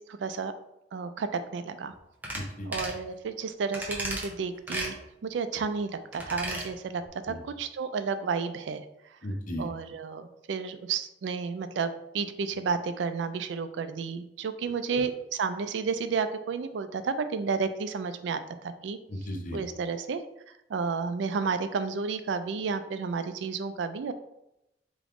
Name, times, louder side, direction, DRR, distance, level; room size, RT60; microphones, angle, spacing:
voice 1, 0.1-0.5 0.9-1.9 2.7-8.9 9.6-19.0 19.5-20.2 20.7-24.1, right 5 dB, 85° right, 10 dB, 0.4 m, -31 dB
sound 1, 2.2-2.4 2.7-3.0 3.7-4.3 4.7-4.9 6.1-6.7 7.0-7.1, right 1 dB, 10° right, 0.7 m, -34 dB
voice 2, 2.3-2.7 7.3-7.4 9.2-9.7 14.9-15.0 19.1-19.6, equal, 50° left, 2 dB, 0.8 m, -35 dB
3.7 x 3.0 x 3.5 m, 0.87 s
head